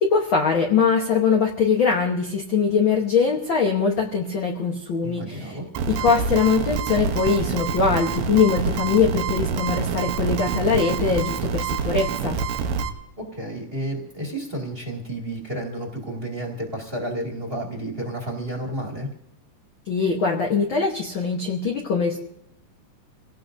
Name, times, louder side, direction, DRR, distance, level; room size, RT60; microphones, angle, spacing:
voice 1, 0.0-5.6 5.9-12.4 19.9-22.2, left 5 dB, 65° left, 0 dB, 1.2 m, -22 dB
voice 2, 5.0-5.6 13.2-19.1, right 1 dB, 20° right, 0 dB, 1.9 m, -31 dB
sound 1, 5.7-12.9, right 6 dB, 85° right, 2.6 m, -26 dB
27.5 x 17.5 x 2.7 m, 0.79 s
omnidirectional pair, 3.9 m